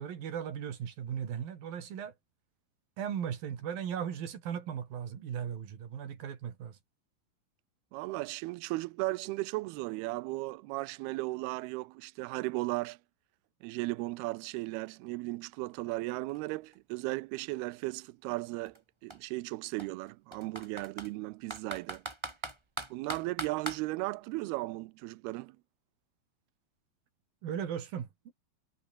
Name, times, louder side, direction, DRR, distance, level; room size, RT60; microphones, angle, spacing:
voice 1, 0.0-2.1 3.0-6.8 27.4-28.3, right 8 dB, 65° right, 4.4 m, -37 dB
voice 2, 7.9-13.0 13.6-22.0 22.9-25.6, right 21 dB, 85° right, 2.6 m, -36 dB
Computer keyboard, 15.5-15.6 15.9-17.9 18.6-18.8 19.1-19.2 19.8-21.1 21.5-23.8, right 1 dB, 10° right, 1.9 m, -40 dB
omnidirectional pair, 4.5 m